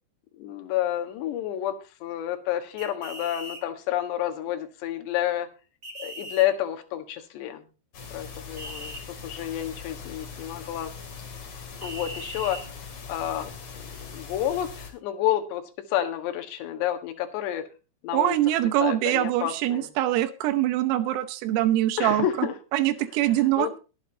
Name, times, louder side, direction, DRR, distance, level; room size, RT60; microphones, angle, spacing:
voice 1, 0.4-5.5 6.0-7.6 8.1-10.9 11.8-12.6 13.1-13.5 13.8-15.6 15.9-17.7 18.0-18.4 18.8-19.9 22.0-22.5 23.6-23.7, left 12 dB, 65° left, 5 dB, 3.3 m, -29 dB
sound 1, 2.8-3.6 5.8-6.5 8.6-9.0 11.8-12.6, right 1 dB, 30° right, 2.0 m, -39 dB
sound 2, 7.9-14.9, left 5 dB, 40° left, 3.4 m, -41 dB
voice 2, 18.1-23.8, right 14 dB, 85° right, 10 dB, 3.6 m, -24 dB
22.0 x 8.8 x 2.8 m, 0.32 s
omnidirectional pair, 5.9 m